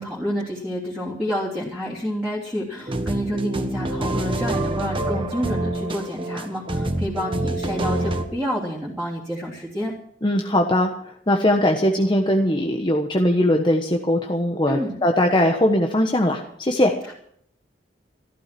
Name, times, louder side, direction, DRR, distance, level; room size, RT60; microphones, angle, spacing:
voice 1, 0.0-9.9 14.7-15.0 17.1-17.2, equal, 5° right, -6 dB, 3.1 m, -29 dB
sound 1, 2.8-8.2, right 1 dB, 30° right, 1.4 m, -26 dB
voice 2, 10.2-10.9 11.3-16.9, left 1 dB, 25° left, 2 dB, 1.3 m, -20 dB
15.0 x 13.5 x 6.0 m, 0.66 s
head